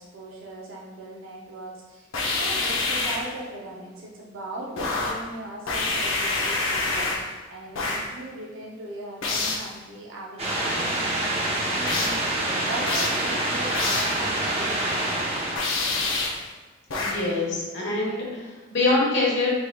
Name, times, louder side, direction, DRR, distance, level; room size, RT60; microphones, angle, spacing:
voice 1, 0.0-15.6, right 1 dB, 75° right, -3 dB, 0.6 m, -39 dB
sound 1, 2.1-3.3 4.8-5.3 5.7-7.3 7.7-8.1 9.2-9.7 11.9-12.3 12.9-13.2 13.7-14.2 15.6-16.5 16.9-17.3, left 3 dB, 75° left, 0.7 m, -27 dB
sound 2, 10.4-15.6, right 1 dB, 30° right, 0.7 m, -26 dB
voice 2, 16.9-19.5, left 2 dB, 60° left, -4 dB, 1.2 m, -25 dB
4.7 x 3.7 x 2.2 m, 1.2 s
head